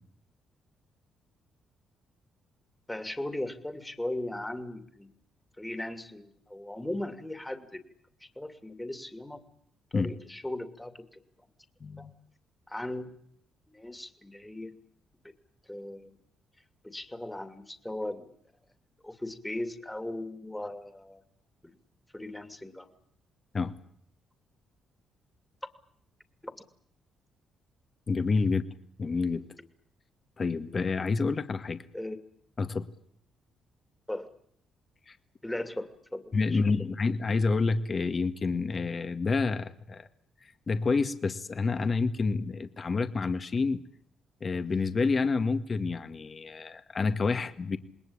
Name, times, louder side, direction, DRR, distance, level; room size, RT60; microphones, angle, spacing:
voice 1, 2.9-5.1 5.6-7.8 8.4-9.4 9.9-11.2 12.0-12.1 12.7-13.1 13.7-14.8 15.7-16.2 16.8-18.3 19.0-21.2 21.6-21.7 22.1-22.9 26.4-26.6 31.9-32.2 34.1-34.3 35.4-36.2 36.5-36.9, left 1 dB, 10° left, 8 dB, 2.7 m, -38 dB
voice 2, 11.8-12.1 23.5-23.7 28.1-28.6 29.0-29.4 30.4-31.8 32.6-32.9 35.1-35.2 36.3-40.1 40.7-43.8 44.4-47.8, left 4 dB, 35° left, 9 dB, 1.9 m, -28 dB
27.5 x 20.5 x 8.8 m, 0.68 s
cardioid pair, 90°, 0 cm